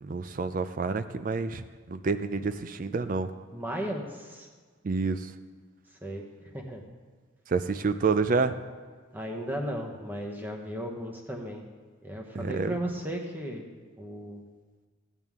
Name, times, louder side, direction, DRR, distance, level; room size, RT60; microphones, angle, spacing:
voice 1, 0.0-3.3 4.8-5.3 7.5-8.6 12.3-12.8, right 4 dB, 40° right, 11 dB, 0.4 m, -28 dB
voice 2, 3.5-4.5 6.0-6.8 9.1-11.6 12.0-13.6 14.0-14.4, equal, 10° right, 1 dB, 1.0 m, -35 dB
14.0 x 9.1 x 3.6 m, 1.5 s
head